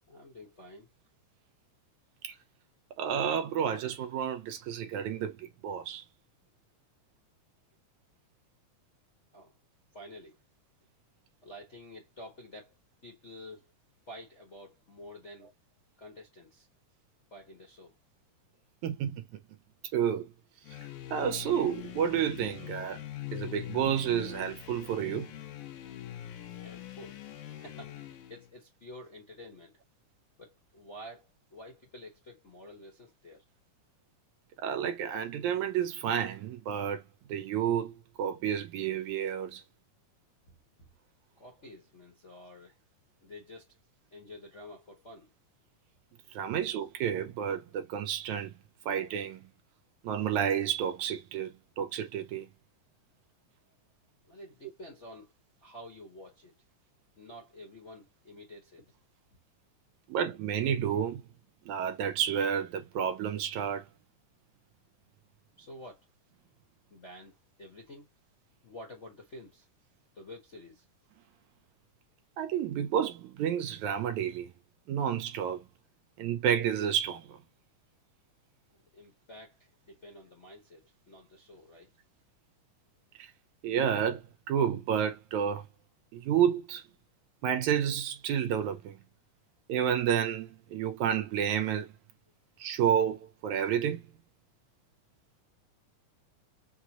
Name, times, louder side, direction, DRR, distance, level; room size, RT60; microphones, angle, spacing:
voice 1, 0.1-0.9 9.3-9.5 9.9-10.4 11.4-12.7 13.0-13.7 14.1-15.5 16.0-16.7 17.3-17.9 26.6-29.7 30.4-33.4 40.8-40.9 41.4-42.7 43.2-43.7 44.1-45.3 46.5-46.6 54.2-55.3 55.6-56.5 57.2-58.9 65.6-66.0 66.9-68.1 68.6-69.7 70.1-70.8 78.7-81.9, left 1 dB, 40° left, 1.1 m, -49 dB
voice 2, 3.0-6.0 18.8-19.2 19.9-20.3 21.1-23.0 23.3-25.3 34.6-37.0 37.3-39.6 46.3-48.5 48.9-49.4 50.0-52.5 60.1-61.2 61.7-63.8 72.4-74.5 74.9-75.6 76.2-77.4 83.2-83.3 83.6-85.7 86.1-86.8 87.4-89.0 89.7-91.9 92.6-94.0, right 8 dB, 75° right, 2.0 m, -30 dB
sound 1, 20.6-28.5, left 12 dB, 80° left, 2.3 m, -43 dB
6.0 x 2.3 x 2.9 m
omnidirectional pair, 3.7 m